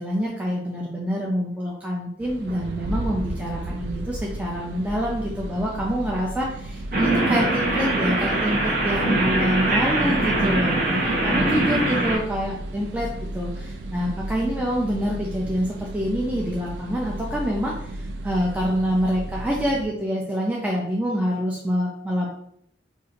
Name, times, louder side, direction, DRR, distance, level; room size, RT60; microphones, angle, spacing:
voice 1, 0.0-13.1 13.3-22.3, equal, 10° right, -3 dB, 0.4 m, -26 dB
sound 1, 2.2-19.9, right 1 dB, 80° right, 0.4 m, -34 dB
sound 2, 6.9-12.2, right 2 dB, 50° right, 0.9 m, -22 dB
2.6 x 2.4 x 3.9 m, 0.70 s
head